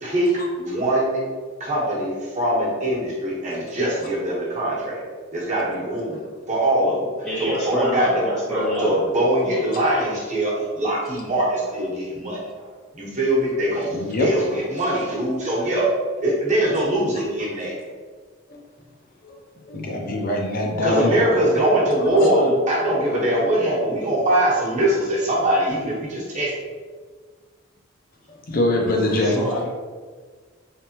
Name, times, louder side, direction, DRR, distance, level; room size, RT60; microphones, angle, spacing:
voice 1, 0.0-0.3 0.6-1.2 1.6-5.0 5.3-6.2 6.5-8.2 8.5-12.7 12.9-13.9 14.2-15.9 16.2-17.9 20.8-26.5, right 1 dB, 35° right, -5 dB, 1.1 m, -22 dB
voice 2, 7.2-9.0 9.4-9.6 22.1-22.5 29.2-29.7, equal, 5° left, -8 dB, 0.5 m, -27 dB
voice 3, 13.9-14.6 18.5-18.6 19.2-19.3 19.6-21.4 22.1-22.3 28.3-29.4, left 1 dB, 45° left, 0 dB, 0.5 m, -24 dB
3.4 x 3.3 x 2.9 m, 1.5 s
head